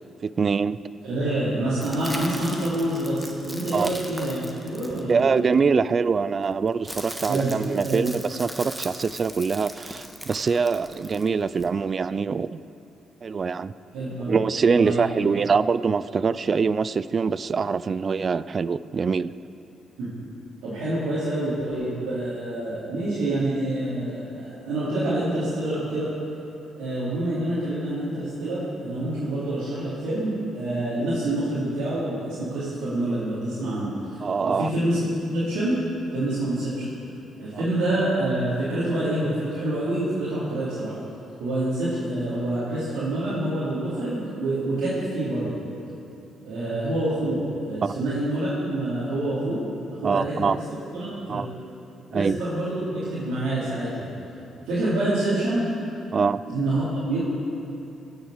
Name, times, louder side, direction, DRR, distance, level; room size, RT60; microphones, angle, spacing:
voice 1, 0.2-0.8 3.7-4.0 5.1-12.6 13.2-13.7 14.3-19.3 34.2-34.7 37.5-37.6 47.8-47.9 50.0-50.6 51.3-51.5 52.1-52.4 56.1-56.4, right 5 dB, 40° right, 17 dB, 0.3 m, -24 dB
voice 2, 1.0-5.4 7.2-7.5 7.8-8.0 13.9-14.3 14.7-15.3 20.0-20.1 20.6-26.1 26.8-35.0 35.3-35.8 36.1-36.8 37.4-40.9 41.4-45.5 46.4-49.6 49.9-50.6 50.9-51.4 52.1-54.1 54.6-55.7 56.5-57.2, right 1 dB, 85° right, -12 dB, 3.3 m, -27 dB
sound 1, 1.8-5.5 6.4-11.7, equal, 5° right, 1.3 m, -39 dB
16.0 x 7.3 x 6.5 m, 2.8 s
cardioid pair, 90°, 0 cm